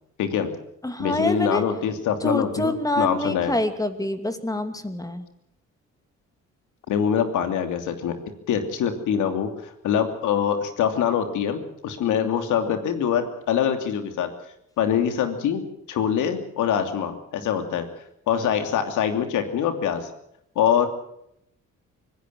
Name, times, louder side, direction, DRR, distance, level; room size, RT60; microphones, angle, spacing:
voice 1, 0.2-0.5 1.0-3.6 6.9-8.2 8.5-14.3 14.8-15.6 15.9-17.9 18.3-20.1 20.5-20.9, left 8 dB, 85° left, 7 dB, 3.0 m, -24 dB
voice 2, 0.8-1.6 2.2-5.2 12.1-12.3, left 1 dB, 10° left, 8 dB, 2.6 m, -26 dB
25.0 x 16.0 x 7.7 m, 0.75 s
cardioid pair, 90°, 30 cm